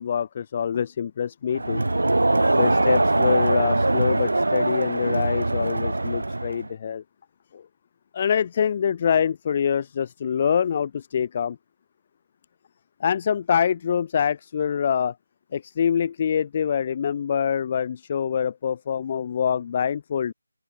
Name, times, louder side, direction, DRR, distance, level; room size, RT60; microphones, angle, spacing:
voice 1, 0.0-1.8 2.5-7.0 7.5-7.6 8.1-11.6 13.0-15.1 15.5-20.3, left 8 dB, 25° left, 0.7 m, -25 dB
Crowd, 1.5-6.7, right 2 dB, 85° right, 0.4 m, -22 dB
figure-of-eight pair, 170°, 0 cm